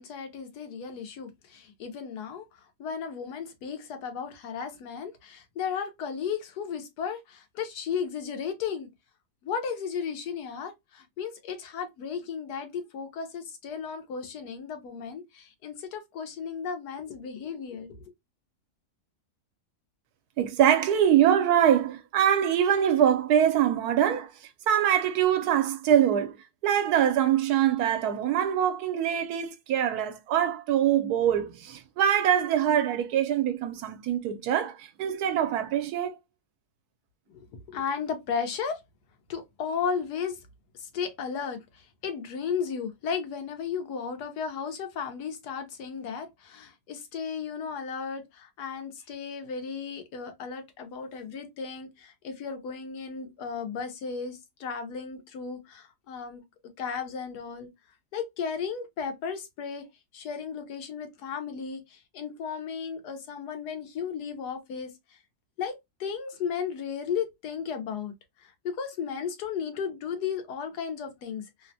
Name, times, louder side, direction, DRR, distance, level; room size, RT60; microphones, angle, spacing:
voice 1, 0.0-8.9 9.4-18.0 37.3-38.8 39.3-40.4 40.7-56.4 56.8-57.7 58.1-59.9 60.1-65.2 65.6-65.7 66.0-68.1 68.4-71.7, left 6 dB, 85° left, 1.3 m, -35 dB
voice 2, 20.4-24.3 24.7-26.4 26.6-36.1, right 10 dB, 80° right, 1.1 m, -24 dB
3.2 x 2.1 x 2.6 m
omnidirectional pair, 1.7 m